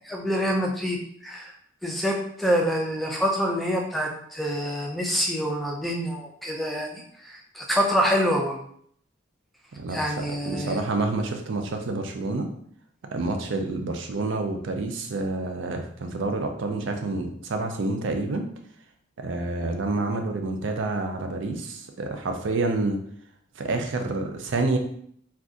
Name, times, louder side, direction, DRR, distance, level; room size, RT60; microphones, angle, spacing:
voice 1, 0.1-1.0 1.2-1.5 1.8-8.6 9.9-10.8, equal, ahead, 0 dB, 0.4 m, -26 dB
voice 2, 9.8-12.5 13.1-18.5 19.2-23.0 23.6-24.8, right 2 dB, 70° right, 5 dB, 0.4 m, -28 dB
2.5 x 2.3 x 3.7 m, 0.65 s
head